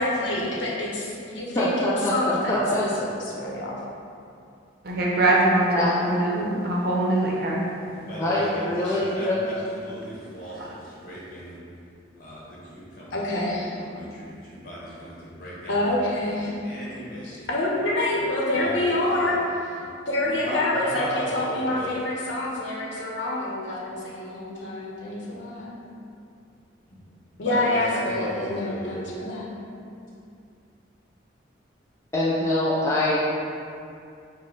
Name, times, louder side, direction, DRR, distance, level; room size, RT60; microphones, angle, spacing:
voice 1, 0.0-3.8 8.8-9.0 13.1-13.8 15.7-16.5 17.2-19.4 19.6-19.8 20.0-25.7 27.4-29.5, left 1 dB, 85° left, -3 dB, 0.8 m, -27 dB
voice 2, 1.6-2.8 5.7-5.9 8.1-9.4 32.1-33.2, left 1 dB, 15° left, -7 dB, 0.3 m, -24 dB
voice 3, 4.8-7.7, right 1 dB, 55° right, -3 dB, 0.7 m, -22 dB
voice 4, 7.9-11.6 12.2-16.4 16.6-17.5 18.1-18.2 18.5-19.4 19.8-19.9 20.2-21.9 26.9-27.0 27.4-29.0, equal, 50° left, -7 dB, 1.1 m, -36 dB
5.2 x 2.1 x 3.8 m, 2.5 s
head